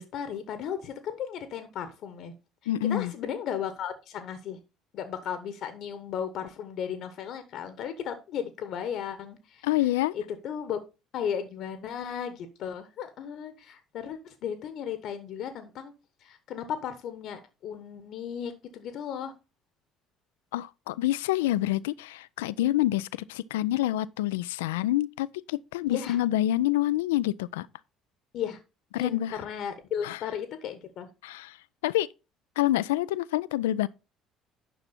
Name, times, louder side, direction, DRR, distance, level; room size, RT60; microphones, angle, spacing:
voice 1, 0.0-2.3 2.9-4.6 4.9-9.9 10.1-10.8 11.1-15.9 16.2-19.3 25.9-26.2 28.3-28.6 29.0-31.1, left 8 dB, 55° left, 1.0 m, -35 dB
voice 2, 2.7-3.1 9.6-10.1 20.5-27.7 28.9-29.4 30.0-30.2 31.2-31.6 31.8-32.1 32.6-33.9, left 14 dB, 75° left, 0.3 m, -27 dB
10.0 x 6.0 x 4.1 m
figure-of-eight pair, 55°, 0 cm